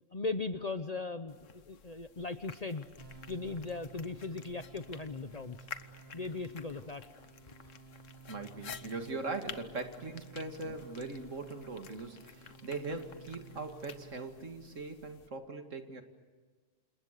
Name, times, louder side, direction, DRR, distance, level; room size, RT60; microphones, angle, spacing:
voice 1, 0.1-2.9 3.3-5.6 6.1-7.0, left 3 dB, 35° left, 10 dB, 0.9 m, -38 dB
sound 1, 1.3-15.3, left 7 dB, 80° left, 1.5 m, -52 dB
sound 2, 3.0-14.3, right 6 dB, 25° right, 8.1 m, -55 dB
voice 2, 8.3-16.0, right 3 dB, 80° right, 5 dB, 2.5 m, -40 dB
29.5 x 27.5 x 6.7 m, 1.4 s
omnidirectional pair, 1.3 m